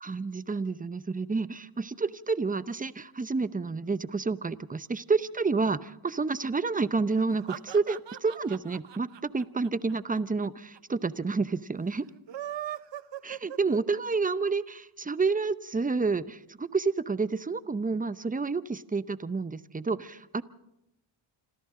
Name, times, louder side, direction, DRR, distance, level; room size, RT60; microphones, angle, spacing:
voice 1, 0.0-9.1 9.3-12.1 13.2-20.4, right 4 dB, 15° right, 14 dB, 0.7 m, -29 dB
sound 1, 7.1-10.5 10.7-10.8 11.0-11.1 12.1-14.3, right 11 dB, 60° right, 1.0 m, -40 dB
27.5 x 26.0 x 3.8 m, 0.86 s
cardioid pair, 95°, 49 cm